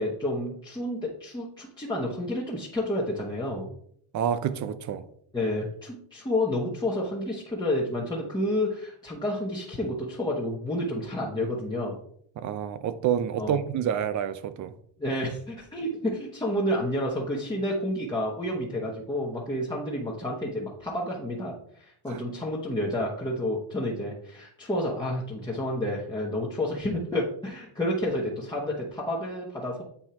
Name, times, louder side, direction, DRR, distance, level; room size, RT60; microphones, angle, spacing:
voice 1, 0.0-3.7 5.3-11.9 13.4-13.6 15.0-29.8, left 1 dB, 10° left, 1.1 m, -30 dB
voice 2, 4.1-5.0 12.4-14.7 22.1-22.2, right 9 dB, 35° right, 0.6 m, -28 dB
8.6 x 4.5 x 4.4 m
cardioid pair, 160°, 50 cm